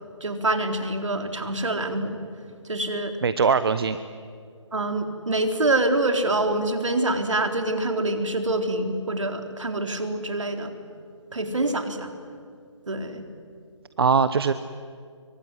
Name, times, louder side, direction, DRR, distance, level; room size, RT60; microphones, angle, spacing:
voice 1, 0.2-2.2 2.7-3.1 4.7-10.7 11.3-12.1 12.9-13.2, right 2 dB, 70° right, 6 dB, 3.9 m, -25 dB
voice 2, 3.2-4.0 14.0-14.5, right 5 dB, 50° right, 13 dB, 0.9 m, -21 dB
25.0 x 24.0 x 9.9 m, 2.2 s
figure-of-eight pair, 150°, 16 cm